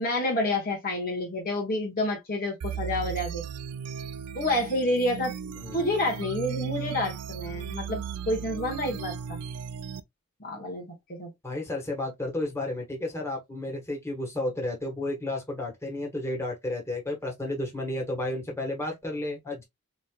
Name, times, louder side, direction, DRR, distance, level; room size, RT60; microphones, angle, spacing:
voice 1, 0.0-3.4 4.3-9.4 10.4-11.3, left 1 dB, 40° left, 1.1 m, -29 dB
sound 1, 2.6-10.0, right 7 dB, 85° right, 0.4 m, -36 dB
voice 2, 5.6-5.9 11.4-19.6, left 1 dB, 10° left, 1.3 m, -32 dB
4.1 x 3.1 x 2.2 m
head